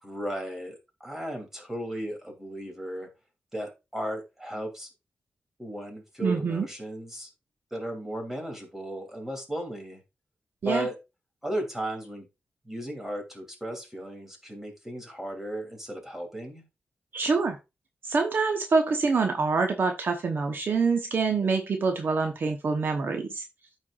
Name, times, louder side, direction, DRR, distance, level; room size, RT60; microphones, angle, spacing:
voice 1, 0.0-3.1 3.5-4.9 5.6-7.3 7.7-10.0 10.6-10.9 11.4-12.3 12.6-16.6, right 1 dB, 10° right, 2 dB, 2.9 m, -35 dB
voice 2, 6.2-6.7 10.6-10.9 17.1-17.6 18.0-23.4, right 4 dB, 60° right, 4 dB, 0.9 m, -26 dB
13.5 x 4.6 x 2.4 m, 0.26 s
wide cardioid pair, 105°, 4 cm